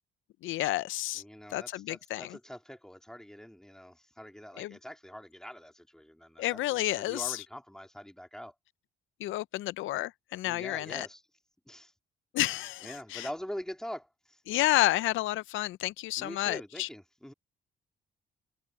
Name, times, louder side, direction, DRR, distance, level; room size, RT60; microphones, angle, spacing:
voice 1, 0.4-1.2 1.5-2.4 4.6-4.7 6.4-7.4 9.2-11.1 12.3-13.3 14.5-16.9, left 16 dB, 80° left, 0.5 m, -30 dB
voice 2, 1.1-8.5 10.4-11.2 11.7-11.9 12.8-14.4 16.2-17.3, equal, 5° left, 3.1 m, -44 dB
cardioid pair, 90°, 20 cm